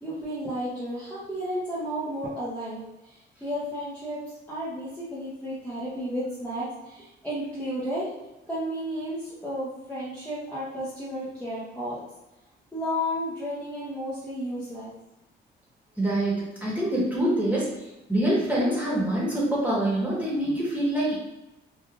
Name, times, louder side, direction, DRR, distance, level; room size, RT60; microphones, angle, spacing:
voice 1, 0.0-2.8 3.4-4.2 4.5-8.1 8.5-12.0 12.7-14.9, equal, 5° left, -10 dB, 0.8 m, -32 dB
voice 2, 16.0-17.7 18.1-21.1, right 1 dB, 10° right, -6 dB, 1.3 m, -25 dB
3.3 x 2.5 x 2.4 m, 0.97 s
cardioid pair, 105°, 19 cm